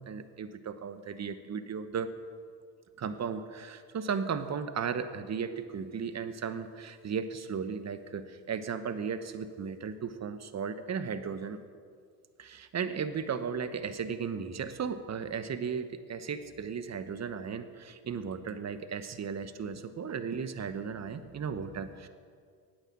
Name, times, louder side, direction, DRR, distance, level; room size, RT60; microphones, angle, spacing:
voice 1, 0.0-2.1 3.0-11.6 12.4-22.1, right 6 dB, 35° right, 11 dB, 1.0 m, -35 dB
10.0 x 9.3 x 7.3 m, 2.1 s
supercardioid pair, 65°, 46 cm